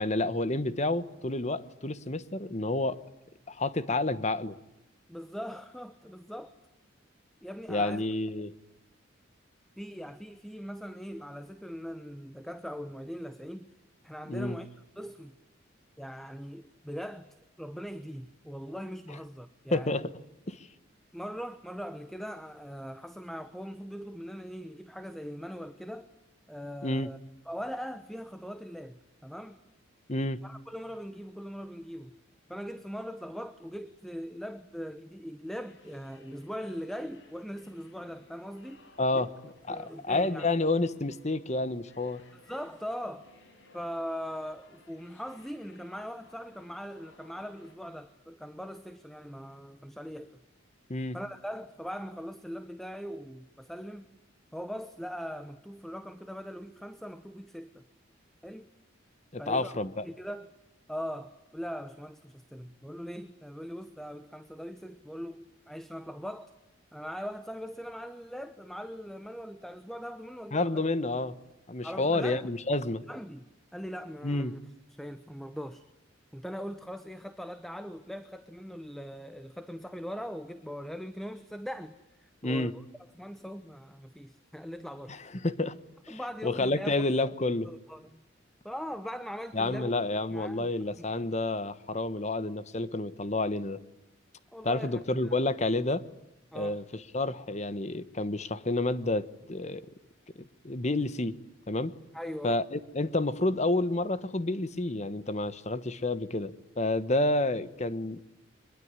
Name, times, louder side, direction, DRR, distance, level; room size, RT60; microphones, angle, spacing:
voice 1, 0.0-3.0 3.5-4.5 7.7-8.5 14.3-14.6 19.7-20.1 20.5-20.7 26.8-27.1 30.1-30.4 39.0-42.2 50.9-51.2 59.3-60.1 70.5-71.4 71.7-73.0 74.2-74.5 82.4-82.7 85.1-85.8 86.1-87.7 89.5-93.8 94.6-96.0 96.5-99.9 100.4-101.4 101.7-101.9 102.4-108.3, left 2 dB, 35° left, 14 dB, 1.2 m, -30 dB
voice 2, 5.1-6.5 7.4-8.0 9.8-13.7 14.0-14.7 15.0-15.3 16.0-17.3 17.6-20.0 21.1-26.1 26.5-27.2 27.5-29.6 30.4-32.2 32.5-38.8 39.1-39.3 39.7-40.5 42.5-43.3 43.7-50.4 51.1-54.1 54.5-57.8 58.4-58.7 59.4-59.8 60.0-60.5 60.9-66.5 66.9-70.8 71.8-72.5 73.1-74.6 75.0-75.8 76.3-82.8 83.1-85.2 86.1-87.0 87.7-88.2 88.6-89.9 90.3-90.7 91.1-91.3 94.5-95.4 96.5-96.8 102.1-102.6, equal, ahead, 11 dB, 1.0 m, -40 dB
sound 1, 35.6-47.7, left 2 dB, 70° left, 5.2 m, -59 dB
24.0 x 22.0 x 9.7 m, 0.91 s
head